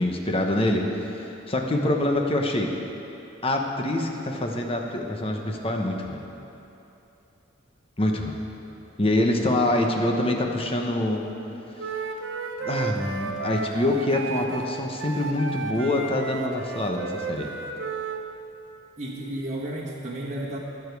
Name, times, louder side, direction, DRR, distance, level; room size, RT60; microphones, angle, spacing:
voice 1, 0.0-2.7 3.4-6.2 8.0-8.4 9.0-11.2 11.8-11.9 12.6-17.5, left 1 dB, 30° left, 2 dB, 1.0 m, -25 dB
voice 2, 1.6-2.0 19.0-20.6, right 1 dB, 35° right, -5 dB, 1.3 m, -32 dB
Wind instrument woodwind instrument, 11.8-18.2, right 4 dB, 70° right, 0.8 m, -33 dB
19.0 x 7.2 x 4.7 m, 2.9 s
head